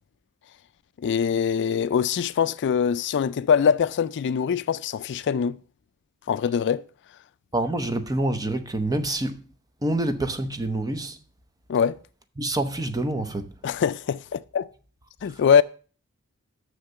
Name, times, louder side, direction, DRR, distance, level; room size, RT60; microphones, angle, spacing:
voice 1, 1.0-5.6 6.3-6.8 11.7-12.0 13.6-14.7 15.2-15.6, left 7 dB, 55° left, 0.4 m, -23 dB
voice 2, 7.5-9.4 9.8-11.2 12.4-13.5, right 1 dB, 15° right, 0.8 m, -27 dB
6.7 x 6.5 x 6.8 m
head